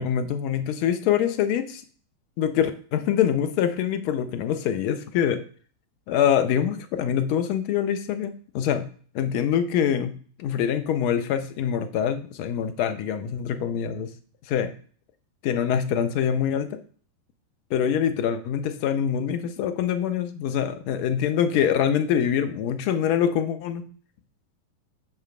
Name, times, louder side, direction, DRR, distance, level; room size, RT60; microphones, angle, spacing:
voice 1, 0.0-1.8 2.4-5.4 6.1-8.9 9.1-14.1 14.5-14.7 15.4-16.8 17.7-23.8, left 9 dB, 45° left, 10 dB, 0.5 m, -24 dB
6.4 x 3.2 x 2.4 m, 0.43 s
figure-of-eight pair, 90°, 0 cm